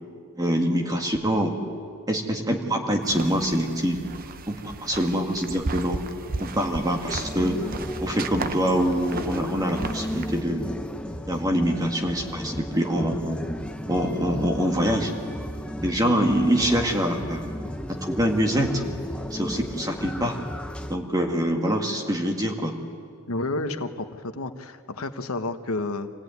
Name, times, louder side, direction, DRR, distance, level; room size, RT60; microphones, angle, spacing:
voice 1, 0.4-1.6 2.1-4.0 4.5-6.0 6.4-7.6 8.0-10.7 11.3-13.4 13.9-15.1 15.8-17.4 17.9-18.8 19.3-20.4 20.9-22.7, equal, 15° right, 2 dB, 2.1 m, -25 dB
sound 1, 3.0-10.4, right 3 dB, 40° right, 0.7 m, -36 dB
sound 2, 7.1-21.0, equal, 5° left, 0.7 m, -34 dB
voice 2, 23.3-26.1, left 2 dB, 80° left, 8 dB, 1.1 m, -30 dB
25.0 x 17.0 x 9.5 m, 2.2 s
head